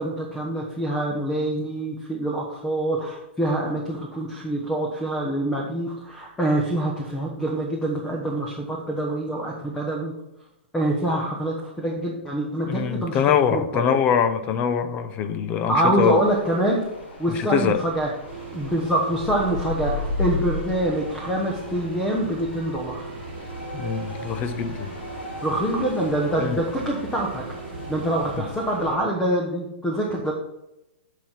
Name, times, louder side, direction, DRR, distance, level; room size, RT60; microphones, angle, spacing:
voice 1, 0.0-10.1 10.7-13.2 13.5-14.0 15.7-16.8 17.2-18.1 18.5-23.1 25.4-27.4 27.9-30.3, right 1 dB, 10° left, -1 dB, 1.1 m, -25 dB
voice 2, 12.7-16.2 17.3-17.8 23.7-24.9 26.3-26.6, left 8 dB, 25° left, 10 dB, 0.6 m, -23 dB
sound 1, 16.0-29.0, left 3 dB, 65° left, 3.0 m, -35 dB
sound 2, 18.3-28.4, right 6 dB, 40° right, 1.3 m, -39 dB
8.6 x 4.6 x 5.6 m, 0.88 s
hypercardioid pair, 155°, 6 cm